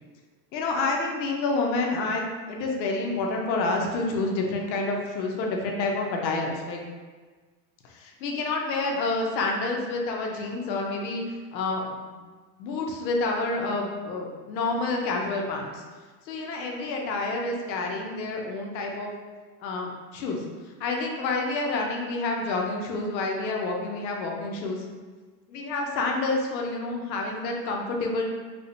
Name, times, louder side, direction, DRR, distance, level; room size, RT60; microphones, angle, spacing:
voice 1, 0.5-6.8 7.8-12.2 12.6-15.8 16.3-19.1 19.6-20.4 20.8-24.8 25.5-28.3, left 3 dB, 85° left, 1 dB, 0.9 m, -28 dB
4.7 x 2.1 x 2.6 m, 1.4 s
supercardioid pair, 180°, 50 cm